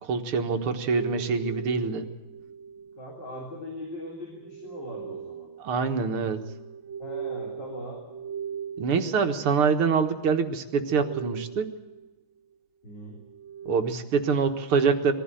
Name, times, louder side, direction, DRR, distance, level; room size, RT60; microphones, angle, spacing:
voice 1, 0.0-2.1 5.6-6.4 8.8-11.7 13.7-15.1, right 5 dB, 85° right, 7 dB, 2.4 m, -25 dB
sound 1, 1.0-3.4 4.3-10.4 10.7-12.1 13.0-14.2, right 7 dB, 35° right, 1.3 m, -40 dB
voice 2, 3.0-5.5 7.0-8.0 12.8-13.2, left 1 dB, 55° left, -1 dB, 4.3 m, -40 dB
22.0 x 15.5 x 9.1 m, 1.1 s
omnidirectional pair, 2.4 m